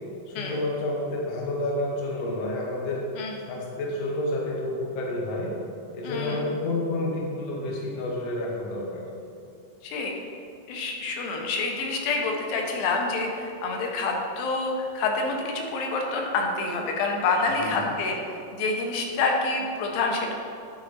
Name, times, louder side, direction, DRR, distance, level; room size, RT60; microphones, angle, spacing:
voice 1, 0.3-3.1 3.4-5.5 5.9-9.0 17.6-17.9, left 1 dB, 60° left, -3 dB, 1.7 m, -29 dB
voice 2, 6.0-6.4 9.8-10.1 10.7-20.3, left 3 dB, 80° left, 1 dB, 2.5 m, -27 dB
9.9 x 3.9 x 4.1 m, 2.5 s
omnidirectional pair, 4.1 m